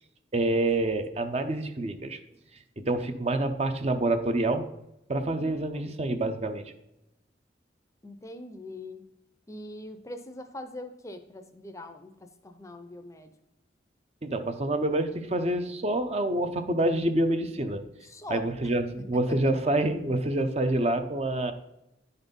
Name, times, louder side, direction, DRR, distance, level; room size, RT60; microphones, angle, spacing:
voice 1, 0.3-2.2 2.8-4.7 5.1-6.7 14.2-17.8 18.3-21.5, right 1 dB, 35° right, 8 dB, 0.6 m, -27 dB
voice 2, 5.4-6.0 8.0-9.0 9.5-13.3 18.0-18.7 19.1-19.4, left 1 dB, 15° left, 8 dB, 0.5 m, -43 dB
10.5 x 4.1 x 5.2 m, 0.89 s
head